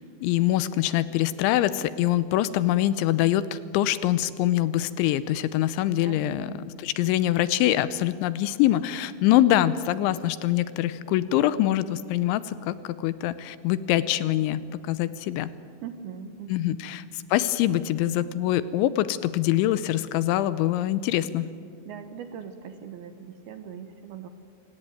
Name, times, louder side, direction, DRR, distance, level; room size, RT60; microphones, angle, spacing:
voice 1, 0.2-6.5 6.8-15.5 16.5-21.5, left 13 dB, 80° left, 15 dB, 3.0 m, -24 dB
voice 2, 6.0-6.6 15.8-16.8 21.9-24.3, right 7 dB, 70° right, 9 dB, 2.6 m, -40 dB
28.0 x 17.0 x 9.2 m, 2.3 s
omnidirectional pair, 5.5 m